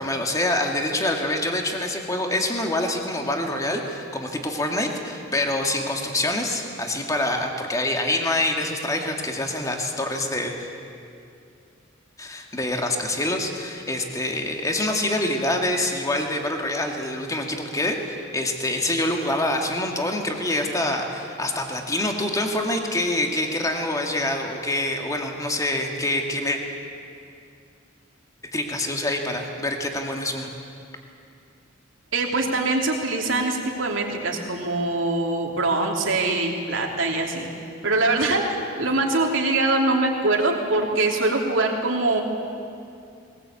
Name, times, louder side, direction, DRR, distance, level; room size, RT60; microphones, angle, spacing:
voice 1, 0.0-10.7 12.2-26.6 28.5-30.5, left 1 dB, 15° left, 2 dB, 2.1 m, -26 dB
voice 2, 32.1-37.5 37.8-38.4 38.8-42.2, right 2 dB, 75° right, 1 dB, 3.0 m, -23 dB
20.5 x 19.0 x 8.5 m, 2.5 s
head